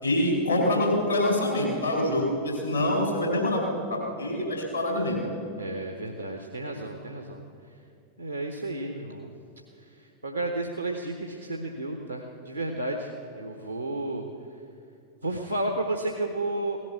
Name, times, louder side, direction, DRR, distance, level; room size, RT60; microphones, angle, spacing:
voice 1, 0.0-3.6 3.9-5.3, left 1 dB, 85° left, 0 dB, 4.1 m, -25 dB
voice 2, 5.6-7.4 8.2-9.3 9.8-14.2 15.2-16.8, right 2 dB, 85° right, 3 dB, 1.1 m, -32 dB
17.0 x 12.0 x 6.9 m, 2.6 s
figure-of-eight pair, 90°, 0 cm